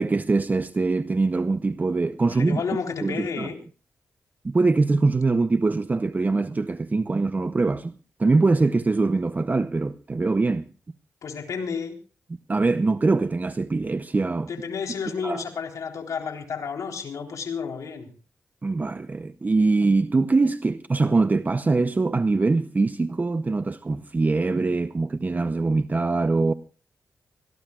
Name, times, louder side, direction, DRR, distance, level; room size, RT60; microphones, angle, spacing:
voice 1, 0.0-2.6 3.0-3.5 4.4-7.9 8.2-10.7 12.5-14.5 15.2-15.4 18.6-26.5, right 3 dB, 30° right, 0.7 m, -23 dB
voice 2, 2.3-3.6 11.2-12.0 14.5-18.1, left 6 dB, 75° left, 3.9 m, -31 dB
25.0 x 18.5 x 2.4 m
cardioid pair, 70°, 6 cm